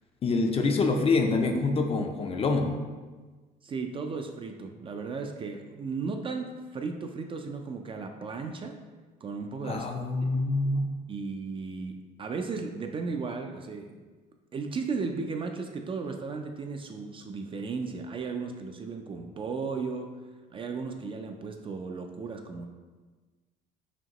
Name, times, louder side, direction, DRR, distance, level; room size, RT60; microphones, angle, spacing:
voice 1, 0.2-2.7 9.6-10.8, left 3 dB, 35° left, 4 dB, 0.4 m, -26 dB
voice 2, 3.6-8.8 9.2-9.9 10.2-10.3 11.1-14.0 14.5-20.1 20.5-22.7, right 4 dB, 30° right, 5 dB, 0.3 m, -35 dB
5.1 x 2.9 x 2.9 m, 1.3 s
cardioid pair, 110°, 17 cm